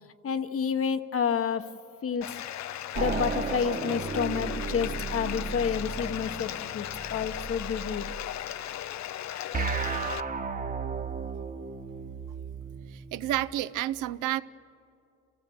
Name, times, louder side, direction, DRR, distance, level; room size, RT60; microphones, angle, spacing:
voice 1, 0.2-1.7 2.0-2.3 2.9-8.1, left 7 dB, 50° left, 11 dB, 1.1 m, -29 dB
Bathtub (filling or washing), 2.2-10.2, left 12 dB, 65° left, 0.6 m, -37 dB
sound 1, 2.9-8.3 9.5-13.5, right 5 dB, 30° right, 1.1 m, -34 dB
voice 2, 12.9-14.4, right 14 dB, 85° right, 15 dB, 0.6 m, -30 dB
29.5 x 15.0 x 7.9 m, 2.6 s
cardioid pair, 90°, 30 cm